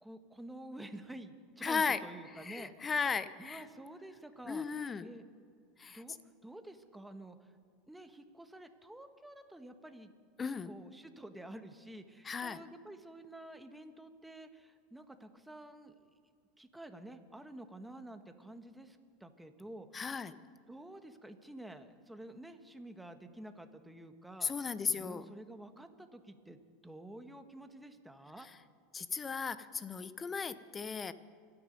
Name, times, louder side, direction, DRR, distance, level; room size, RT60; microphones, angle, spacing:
voice 1, 0.0-2.9 3.4-4.6 5.0-5.2 5.9-7.5 7.9-10.1 10.7-16.1 16.6-20.0 20.7-24.5 24.9-28.5, right 1 dB, 5° right, 7 dB, 1.3 m, -50 dB
voice 2, 1.6-2.0 2.4-3.7 4.5-5.1 5.8-6.0 10.4-10.7 12.2-12.6 19.9-20.3 24.4-25.3 28.4-28.5 28.9-31.1, left 5 dB, 25° left, 14 dB, 0.8 m, -36 dB
25.5 x 9.9 x 5.3 m, 2.1 s
supercardioid pair, 105°, 0 cm